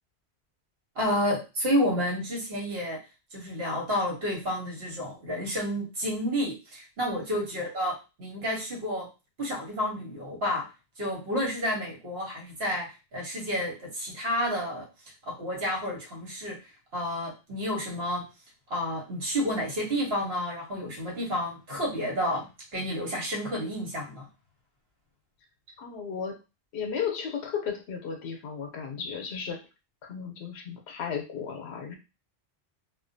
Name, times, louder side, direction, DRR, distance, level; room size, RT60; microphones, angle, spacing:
voice 1, 1.0-3.0 3.3-9.1 9.4-10.7 11.0-14.9 15.3-16.6 16.9-18.3 18.7-22.5 22.7-24.3, equal, 70° right, -2 dB, 1.3 m, -30 dB
voice 2, 25.8-26.4 26.7-29.7 30.0-32.0, left 7 dB, 85° left, 3 dB, 0.9 m, -34 dB
2.4 x 2.2 x 2.5 m, 0.28 s
omnidirectional pair, 1.1 m